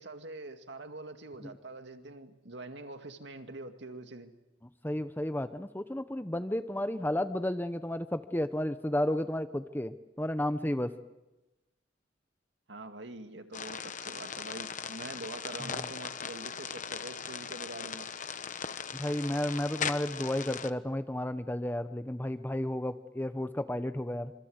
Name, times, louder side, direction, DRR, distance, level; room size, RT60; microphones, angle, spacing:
voice 1, 0.0-4.3 12.7-18.1, right 2 dB, 60° right, 7 dB, 2.2 m, -44 dB
voice 2, 4.8-10.9 15.6-15.9 18.9-24.3, left 1 dB, 10° left, 10 dB, 0.8 m, -32 dB
sound 1, 13.5-20.7, left 7 dB, 40° left, 1.0 m, -39 dB
26.0 x 25.0 x 8.0 m, 1.0 s
head